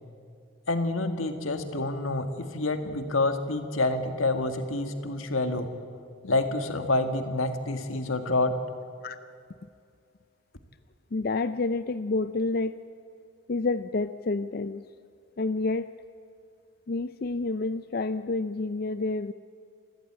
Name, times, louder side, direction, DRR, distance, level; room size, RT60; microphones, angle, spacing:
voice 1, 0.7-5.7 6.2-8.6, left 2 dB, 85° left, 7 dB, 1.9 m, -28 dB
voice 2, 11.1-12.7 13.5-14.8 15.4-15.9 16.9-19.3, left 3 dB, 50° left, 12 dB, 0.5 m, -29 dB
27.0 x 14.5 x 8.8 m, 2.4 s
head